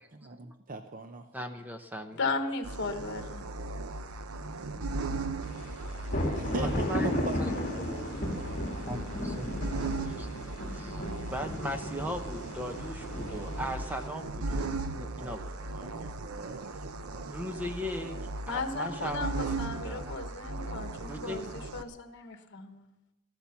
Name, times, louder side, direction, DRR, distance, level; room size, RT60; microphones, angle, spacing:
voice 1, 0.1-1.3 6.3-8.4 15.2-17.3, right 3 dB, 40° right, 8 dB, 0.7 m, -41 dB
voice 2, 1.3-2.2 6.4-7.1 7.4-7.5 8.9-9.5 10.1-10.3 10.7-11.0 11.3-16.1 17.2-18.2 18.5-20.2 21.1-21.4, equal, 10° right, 6 dB, 0.8 m, -39 dB
voice 3, 2.2-3.5 18.5-22.9, left 3 dB, 55° left, 7 dB, 1.5 m, -35 dB
sound 1, 2.6-21.8, right 2 dB, 85° right, 0.8 m, -37 dB
sound 2, 5.5-14.1, left 1 dB, 35° left, 2.4 m, -35 dB
14.5 x 12.5 x 5.8 m, 0.96 s
head